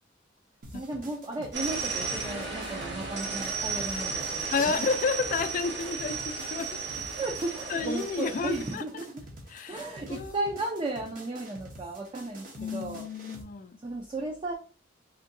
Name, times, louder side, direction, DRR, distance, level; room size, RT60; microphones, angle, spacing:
sound 1, 0.6-13.4, right 1 dB, 50° right, 0.9 m, -47 dB
voice 1, 0.7-4.9 7.1-9.2 9.7-13.1 13.8-14.5, right 2 dB, 25° right, 0.5 m, -35 dB
sound 2, 1.5-8.7, right 4 dB, 65° right, 1.1 m, -34 dB
voice 2, 4.5-6.8 7.7-9.0 9.5-10.5 12.6-13.8, left 5 dB, 45° left, 0.3 m, -31 dB
3.7 x 2.7 x 2.6 m
head